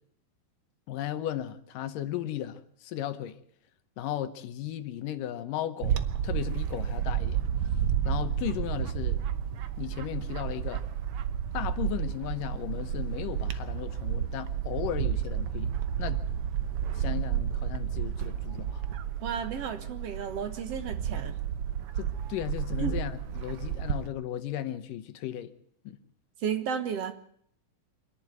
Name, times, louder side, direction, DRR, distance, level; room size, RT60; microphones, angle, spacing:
voice 1, 0.9-3.4 4.0-7.4 8.1-9.2 9.8-10.8 11.5-15.7 16.0-16.2 16.9-18.8 22.0-25.5 25.9-26.0, left 12 dB, 75° left, 12 dB, 2.5 m, -35 dB
Bird / Wind, 5.8-24.1, right 9 dB, 90° right, 1.2 m, -31 dB
voice 2, 19.2-21.4 22.8-23.0 26.4-27.1, right 7 dB, 60° right, 9 dB, 1.9 m, -33 dB
25.5 x 11.0 x 9.5 m, 0.64 s
omnidirectional pair, 4.1 m